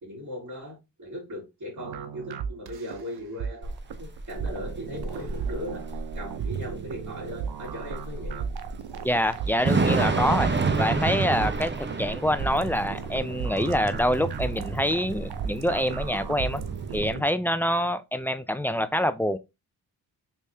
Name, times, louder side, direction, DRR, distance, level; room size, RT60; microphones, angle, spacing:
voice 1, 0.0-5.9 6.1-8.5, left 1 dB, 55° right, 2.2 m, -38 dB
sound 1, 1.8-17.3, right 7 dB, 70° right, 0.6 m, -36 dB
Thunder / Rain, 3.6-17.1, right 3 dB, 25° right, 0.8 m, -30 dB
voice 2, 9.0-10.5 10.8-11.7 12.0-16.6 16.9-19.4, equal, 5° left, 0.3 m, -26 dB
3.4 x 3.2 x 2.8 m
cardioid pair, 55°, 40 cm